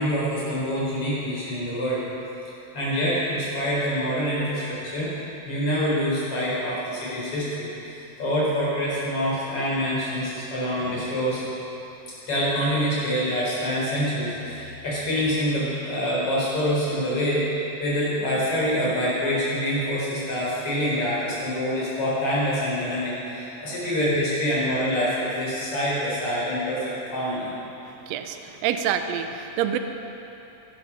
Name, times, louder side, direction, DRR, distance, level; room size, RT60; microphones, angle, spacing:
voice 1, 0.0-2.0 2.7-5.1 5.5-11.4 12.3-17.4 17.8-27.5, equal, 50° left, -7 dB, 5.0 m, -26 dB
voice 2, 28.1-29.8, right 9 dB, 75° right, 7 dB, 1.6 m, -27 dB
13.5 x 11.5 x 5.6 m, 3.0 s
omnidirectional pair, 3.5 m